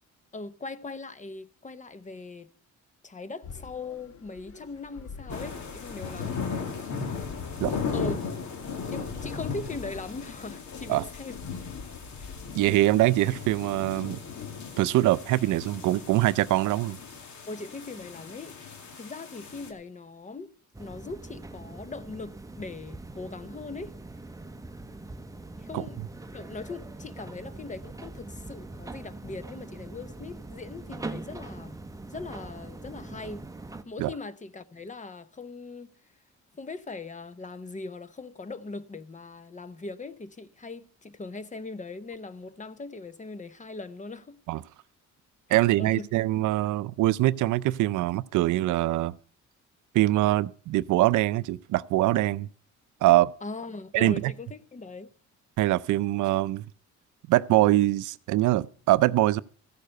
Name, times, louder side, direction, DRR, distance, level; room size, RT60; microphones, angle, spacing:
voice 1, 0.3-2.5 3.0-6.4 7.9-8.2 8.8-11.4 17.5-18.6 19.0-23.9 25.6-26.0 26.3-31.8 32.1-33.4 33.9-35.9 36.5-44.4 45.5-46.1 53.4-55.1, left 3 dB, 25° left, 0.8 m, -40 dB
sound 1, 3.4-13.7, left 5 dB, 50° left, 1.3 m, -46 dB
sound 2, 5.3-19.7, left 5 dB, 70° left, 2.2 m, -37 dB
voice 2, 12.5-14.2 14.8-17.0 25.7-25.8 34.0-34.1 44.5-44.6 45.5-49.1 49.9-52.5 53.0-53.3 53.9-54.3 55.6-56.6 57.3-59.4, right 16 dB, 80° right, 0.5 m, -23 dB
sound 3, 20.7-33.8, right 2 dB, 10° right, 0.7 m, -42 dB
14.5 x 6.7 x 6.4 m
cardioid pair, 90°, 30 cm